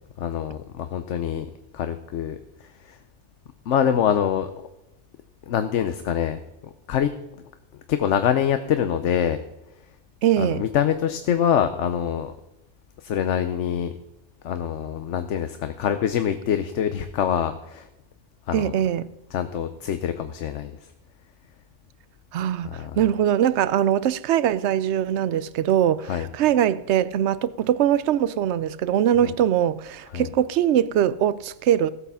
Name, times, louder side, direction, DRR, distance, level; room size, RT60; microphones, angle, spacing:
voice 1, 0.2-1.5 1.7-3.0 3.7-4.5 5.5-7.1 7.9-9.4 10.4-12.3 13.0-13.9 14.4-17.9 18.5-18.7 19.3-20.7 22.6-23.0 26.1-26.3 29.2-29.3 30.1-30.3, left 9 dB, 85° left, 1.1 m, -25 dB
voice 2, 10.2-10.6 18.5-19.1 22.3-31.9, right 10 dB, 75° right, 0.9 m, -22 dB
16.0 x 8.3 x 5.6 m
omnidirectional pair, 1.2 m